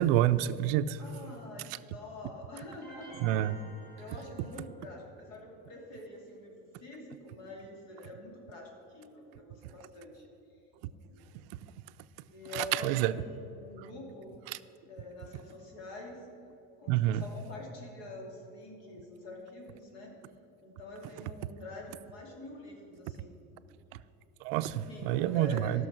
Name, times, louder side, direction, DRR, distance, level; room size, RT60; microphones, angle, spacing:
voice 1, 0.0-1.0 3.2-3.6 12.5-13.1 14.5-14.6 16.9-17.2 24.4-25.8, right 13 dB, 75° right, 14 dB, 0.5 m, -28 dB
voice 2, 1.0-3.5 4.0-10.3 11.1-11.3 12.3-14.3 14.8-16.2 16.8-20.1 20.6-23.3 24.9-25.9, left 2 dB, 55° left, -1 dB, 2.7 m, -46 dB
sound 1, 2.8-4.9, right 2 dB, 10° right, 2.1 m, -51 dB
14.5 x 6.4 x 6.0 m, 2.8 s
cardioid pair, 170°, 30 cm